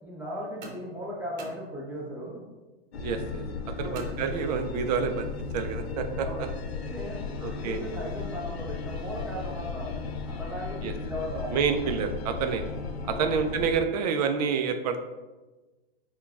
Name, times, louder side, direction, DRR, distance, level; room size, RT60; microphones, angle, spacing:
voice 1, 0.0-2.4 3.8-4.0 6.2-6.5 6.8-11.9 13.1-13.4, equal, 5° right, -5 dB, 0.8 m, -37 dB
sound 1, 0.6-2.3 3.9-4.9, right 3 dB, 60° right, 0.8 m, -46 dB
sound 2, 2.9-13.8, left 4 dB, 90° left, 0.5 m, -35 dB
voice 2, 3.0-3.4 3.8-5.3 5.5-6.5 7.4-7.8 10.8-10.9 11.5-12.6 13.1-15.0, right 6 dB, 40° right, 7 dB, 0.4 m, -28 dB
5.7 x 2.3 x 2.3 m, 1.2 s
hypercardioid pair, 130°, 31 cm